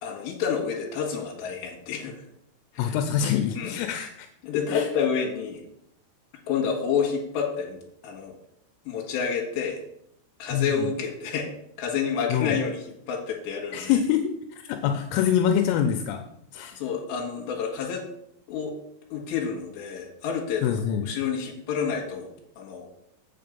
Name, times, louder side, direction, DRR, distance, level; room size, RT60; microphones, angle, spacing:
voice 1, 0.0-2.2 2.7-3.0 3.6-3.8 4.4-5.6 6.5-7.8 8.0-8.4 8.9-9.8 10.4-13.9 16.7-18.1 18.5-18.7 19.1-22.3 22.6-22.9, left 6 dB, 65° left, -1 dB, 3.6 m, -29 dB
voice 2, 2.8-4.3 4.7-4.9 10.5-10.9 12.3-12.5 13.7-16.2 16.5-16.8 20.6-21.1, left 9 dB, 85° left, 5 dB, 3.3 m, -25 dB
7.7 x 7.4 x 5.2 m, 0.74 s
omnidirectional pair, 5.8 m